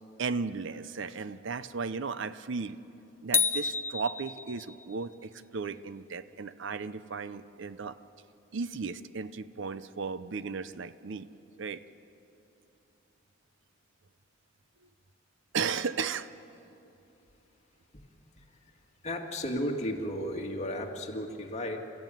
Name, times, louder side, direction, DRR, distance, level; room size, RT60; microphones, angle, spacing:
voice 1, 0.2-2.8 3.2-8.0 8.5-11.3 11.6-11.8 15.5-16.3, right 5 dB, 65° right, 14 dB, 0.6 m, -35 dB
sound 1, 3.3-4.9, left 5 dB, 10° left, 0.6 m, -29 dB
voice 2, 18.4-18.7 19.0-21.8, equal, 35° left, 1 dB, 2.0 m, -34 dB
30.0 x 14.5 x 9.2 m, 3.0 s
head